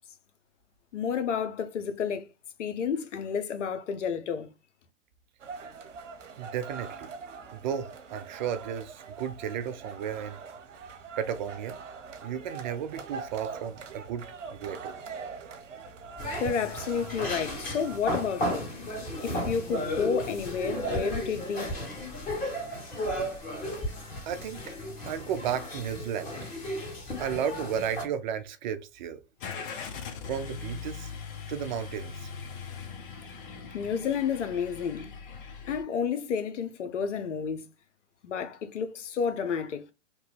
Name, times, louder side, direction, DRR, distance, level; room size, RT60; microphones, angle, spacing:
voice 1, 0.9-2.3 2.6-4.5 16.4-18.8 19.2-21.8 33.7-35.2 35.7-37.7 38.2-39.8, left 7 dB, 75° left, 0.7 m, -31 dB
sound 1, 5.4-18.0, right 5 dB, 80° right, 0.8 m, -43 dB
voice 2, 6.4-7.1 7.5-10.4 10.9-11.8 12.2-14.2 14.5-15.0 24.3-24.7 25.0-26.4 27.2-29.2 30.3-31.1 31.5-32.3, right 8 dB, 40° right, 0.4 m, -34 dB
sound 2, 16.2-28.0, equal, 20° left, 1.4 m, -34 dB
Car / Engine starting, 29.4-35.8, left 6 dB, 45° left, 0.8 m, -40 dB
2.9 x 2.2 x 3.2 m
hypercardioid pair, 115°, 37 cm